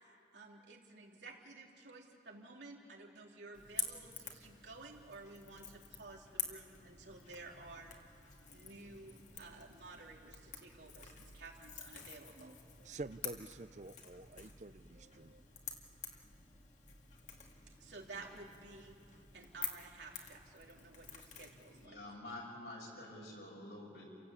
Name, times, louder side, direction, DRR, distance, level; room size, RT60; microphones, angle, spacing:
voice 1, 0.0-7.9 8.5-12.7 17.7-22.0, right 3 dB, 90° right, -1 dB, 3.5 m, -53 dB
Crackle / Crack, 3.5-21.9, left 7 dB, 45° left, 2.2 m, -49 dB
voice 2, 12.4-15.4, right 2 dB, 40° right, 13 dB, 0.6 m, -49 dB
voice 3, 21.7-24.0, left 1 dB, 75° left, -2 dB, 7.0 m, -48 dB
30.0 x 17.5 x 8.4 m, 2.8 s
head